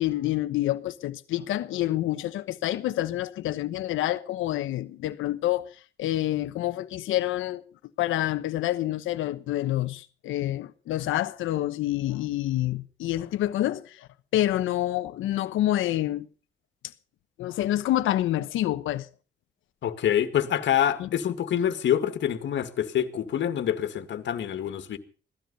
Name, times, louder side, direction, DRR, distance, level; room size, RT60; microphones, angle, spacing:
voice 1, 0.0-5.7 6.0-7.6 8.0-16.3 17.4-19.1 21.0-21.1, left 14 dB, 85° left, 1.1 m, -27 dB
voice 2, 19.8-25.0, left 10 dB, 65° left, 2.1 m, -26 dB
17.0 x 13.0 x 5.5 m
cardioid pair, 90°, 20 cm